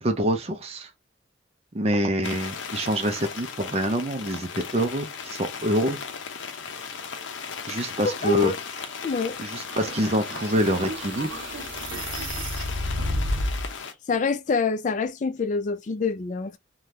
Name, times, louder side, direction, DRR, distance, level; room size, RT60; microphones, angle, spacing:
voice 1, 0.0-0.9 1.7-6.0 7.7-8.5 9.4-11.5, equal, 30° right, 0.5 m, -26 dB
sound 1, 2.2-13.9, left 6 dB, 85° left, 0.6 m, -37 dB
voice 2, 8.2-8.6 9.0-9.4 14.1-16.6, left 4 dB, 40° left, 0.4 m, -26 dB
sound 2, 9.7-13.7, equal, 85° right, 0.7 m, -31 dB
2.7 x 2.3 x 3.3 m
head